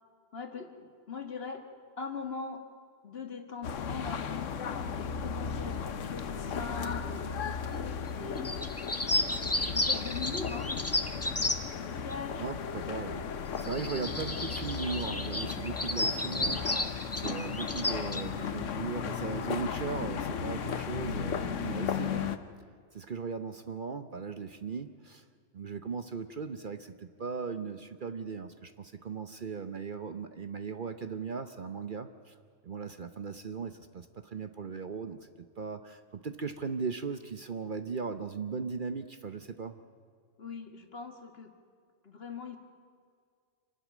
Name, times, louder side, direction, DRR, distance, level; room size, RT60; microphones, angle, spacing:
voice 1, 0.3-1.7 2.0-2.6 3.0-4.5 4.9-8.7 9.6-11.1 11.8-12.9 40.4-41.5 42.0-42.6, left 5 dB, 55° left, 5 dB, 2.0 m, -41 dB
sound 1, 3.6-22.4, left 7 dB, 80° left, 1.3 m, -35 dB
sound 2, 8.4-11.6 12.1-12.2 13.6-18.2, left 1 dB, 15° left, 0.9 m, -32 dB
voice 2, 12.4-16.9 17.1-22.4 22.9-25.2 25.5-32.4 32.6-39.8, right 5 dB, 45° right, 9 dB, 0.9 m, -38 dB
26.5 x 12.5 x 9.2 m, 2.1 s
omnidirectional pair, 1.3 m